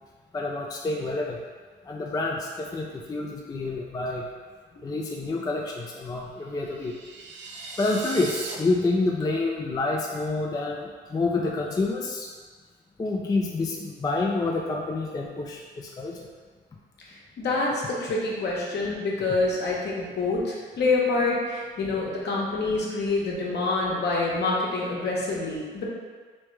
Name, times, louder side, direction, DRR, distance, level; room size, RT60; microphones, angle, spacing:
voice 1, 0.3-1.4 1.8-4.3 4.8-6.9 7.8-12.3 13.0-16.3, left 3 dB, 20° left, -1 dB, 0.4 m, -28 dB
sound 1, 6.5-8.6, right 3 dB, 65° right, 0.6 m, -38 dB
voice 2, 17.4-25.9, left 3 dB, 60° left, -3 dB, 1.0 m, -26 dB
3.3 x 3.1 x 3.2 m, 1.5 s
cardioid pair, 90°, 20 cm